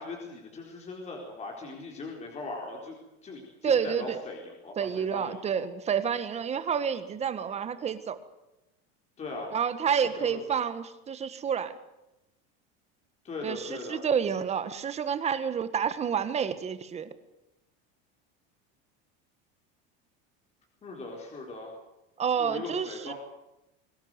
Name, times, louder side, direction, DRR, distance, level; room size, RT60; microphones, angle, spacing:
voice 1, 0.0-3.0 3.2-5.6 9.2-9.5 10.2-10.4 13.2-14.0 20.8-21.8 22.4-23.1, left 3 dB, 20° left, 0 dB, 4.3 m, -39 dB
voice 2, 3.6-4.2 4.8-8.2 9.5-11.8 13.4-17.1 22.2-23.1, right 7 dB, 20° right, 12 dB, 1.5 m, -29 dB
23.0 x 19.0 x 8.1 m, 0.92 s
cardioid pair, 170°, 31 cm